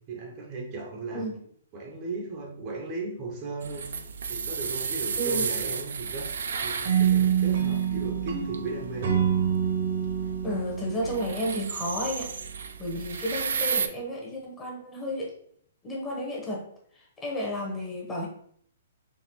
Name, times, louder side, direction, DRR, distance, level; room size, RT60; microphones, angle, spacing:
voice 1, 0.1-1.3 1.7-4.0 4.3-9.3, right 3 dB, 30° right, 1 dB, 0.6 m, -36 dB
sound 1, 3.6-13.9, right 6 dB, 80° right, 0.4 m, -34 dB
voice 2, 5.1-5.5 10.4-12.3 12.8-15.3 15.8-16.7 17.2-18.3, equal, 15° left, -2 dB, 1.0 m, -32 dB
sound 2, 6.8-12.0, right 9 dB, 65° right, 0.8 m, -27 dB
4.0 x 3.0 x 3.0 m, 0.64 s
hypercardioid pair, 155°, 0 cm